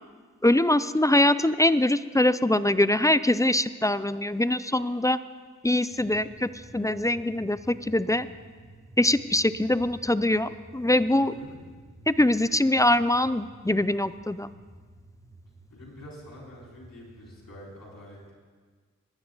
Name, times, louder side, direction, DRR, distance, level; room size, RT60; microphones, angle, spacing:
voice 1, 0.4-5.2 5.6-8.3 9.0-11.3 12.1-14.5, left 1 dB, 10° left, 15 dB, 0.4 m, -23 dB
sound 1, 5.9-17.6, right 1 dB, 15° right, 1.7 m, -51 dB
voice 2, 11.2-11.6 15.7-18.3, left 1 dB, 85° left, -4 dB, 4.2 m, -46 dB
20.5 x 9.5 x 3.9 m, 1.5 s
cardioid pair, 45°, 33 cm